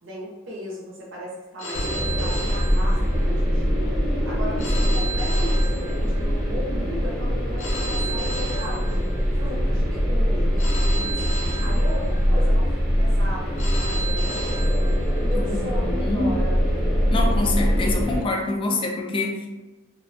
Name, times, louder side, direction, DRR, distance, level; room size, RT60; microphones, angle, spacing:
voice 1, 0.0-3.9 4.2-9.1 9.4-11.2 11.6-14.9 15.2-16.6, equal, 70° right, -5 dB, 0.5 m, -36 dB
Telephone, 1.6-3.5 4.6-6.5 7.6-9.5 10.6-12.4 13.6-15.4, right 2 dB, 85° left, 0.6 m, -34 dB
sound 1, 1.7-18.2, equal, ahead, 0.7 m, -22 dB
voice 2, 16.0-16.3 17.1-19.4, left 2 dB, 25° left, 2 dB, 0.3 m, -25 dB
2.4 x 2.1 x 2.4 m, 1.1 s
head